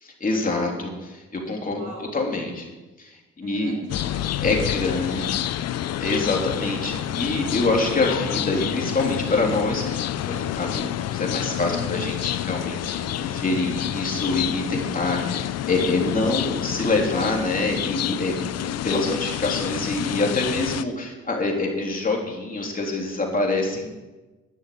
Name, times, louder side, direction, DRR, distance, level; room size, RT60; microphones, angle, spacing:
voice 1, 0.0-1.8 2.1-2.7 3.0-3.7 4.4-5.3 5.7-18.3 18.8-23.9, left 2 dB, 30° left, 0 dB, 3.3 m, -26 dB
voice 2, 1.7-2.1 3.4-5.6 11.7-12.2 18.5-19.3, right 2 dB, 70° right, 1 dB, 4.6 m, -41 dB
sound 1, 3.9-20.8, left 12 dB, 55° left, 0.5 m, -28 dB
11.5 x 6.4 x 8.6 m, 1.1 s
cardioid pair, 90°, 30 cm